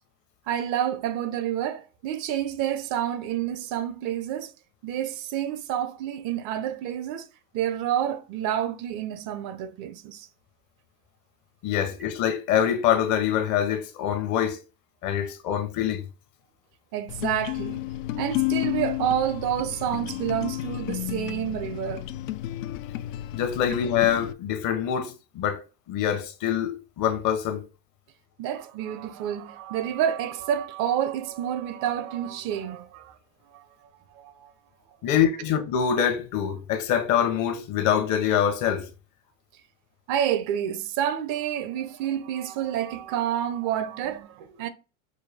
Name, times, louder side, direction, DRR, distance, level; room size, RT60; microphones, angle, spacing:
voice 1, 0.5-4.5 4.8-7.3 7.5-10.3 16.9-17.9 18.2-22.1 28.4-33.2 33.5-33.7 34.1-34.5 40.1-44.7, right 10 dB, 50° right, 0.7 m, -29 dB
voice 2, 11.6-14.6 15.0-16.0 23.3-25.6 25.9-27.6 35.0-38.9, left 9 dB, 50° left, 0.9 m, -25 dB
sound 1, 17.1-24.3, left 15 dB, 80° left, 0.5 m, -31 dB
5.3 x 2.2 x 3.4 m
supercardioid pair, 105°, 39 cm